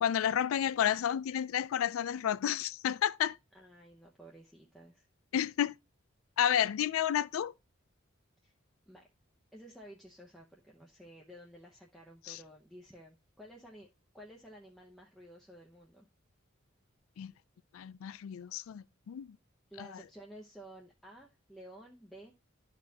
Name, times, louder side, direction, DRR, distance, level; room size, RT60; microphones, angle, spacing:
voice 1, 0.0-3.4 5.3-5.7 6.4-7.5 12.3-12.4 17.2-17.3 17.7-19.4, left 9 dB, 85° left, 0.3 m, -31 dB
voice 2, 3.5-5.1 8.4-8.5 8.9-9.1 9.5-13.9 14.1-16.1 19.7-22.3, right 1 dB, ahead, 0.8 m, -53 dB
12.5 x 4.2 x 2.8 m
head